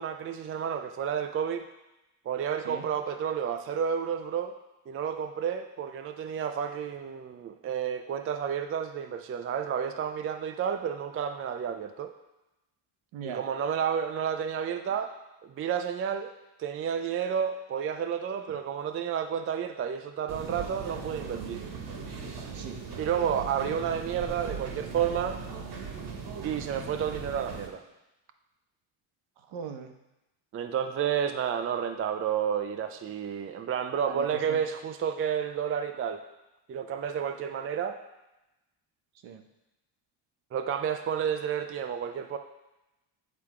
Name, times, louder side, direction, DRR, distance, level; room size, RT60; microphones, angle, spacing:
voice 1, 0.0-1.6 2.3-4.5 4.9-12.1 13.3-15.1 15.4-21.6 23.0-25.4 26.4-27.8 30.5-36.2 36.7-38.0 40.5-42.4, right 8 dB, 30° right, 7 dB, 0.3 m, -31 dB
voice 2, 13.1-13.4 14.9-15.0 18.5-18.6 22.4-22.8 29.4-30.0 34.0-34.6 39.2-39.4, right 7 dB, 65° right, 6 dB, 0.9 m, -41 dB
sound 1, 20.3-27.7, right 5 dB, 50° right, 1.2 m, -39 dB
8.7 x 3.4 x 4.8 m, 0.96 s
cardioid pair, 110°, 50 cm